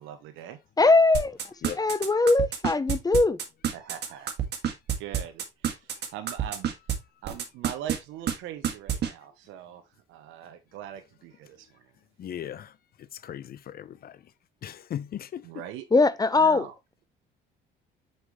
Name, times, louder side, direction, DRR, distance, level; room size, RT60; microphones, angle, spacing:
voice 1, 0.0-0.6 3.7-4.3 5.0-6.7 7.2-9.8 10.1-11.8 15.4-15.8 16.4-16.7, right 11 dB, 80° right, 0.9 m, -41 dB
voice 2, 0.8-1.4 1.8-3.4 15.9-16.7, left 3 dB, 20° left, 0.7 m, -21 dB
sound 1, 1.1-6.9 7.3-8.0 8.3-8.4 8.6-9.1, right 9 dB, 55° right, 1.7 m, -27 dB
voice 3, 12.2-12.7 13.0-14.2 14.6-15.6, left 10 dB, 50° left, 0.6 m, -38 dB
6.2 x 5.6 x 3.1 m
supercardioid pair, 80°, 20 cm